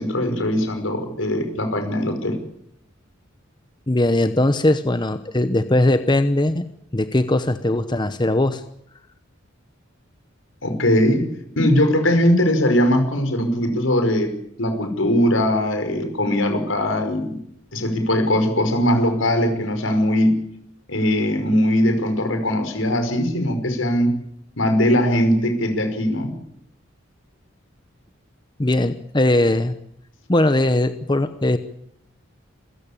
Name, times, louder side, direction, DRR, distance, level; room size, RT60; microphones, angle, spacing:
voice 1, 0.0-2.4 10.6-11.2 11.6-14.3 14.6-17.4 17.7-20.3 20.9-24.1 24.6-26.3, left 1 dB, 80° left, 7 dB, 5.3 m, -20 dB
voice 2, 3.9-6.7 6.9-8.6 28.6-29.7 30.3-31.6, left 1 dB, 25° left, 11 dB, 0.9 m, -19 dB
26.5 x 16.0 x 8.7 m, 0.74 s
head